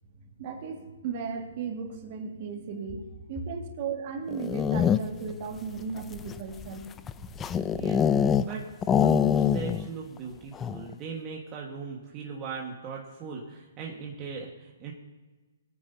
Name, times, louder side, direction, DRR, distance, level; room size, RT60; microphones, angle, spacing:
voice 1, 0.2-6.9 10.3-10.4, right 5 dB, 40° right, 3 dB, 1.9 m, -36 dB
sound 1, 4.3-5.3 6.0-8.5 8.8-9.9 10.2-10.3 10.6-10.9, left 8 dB, 15° left, 0.4 m, -25 dB
voice 2, 7.7-14.9, right 5 dB, 25° right, -2 dB, 1.5 m, -39 dB
22.0 x 9.5 x 2.7 m, 1.3 s
hypercardioid pair, 155°, 0 cm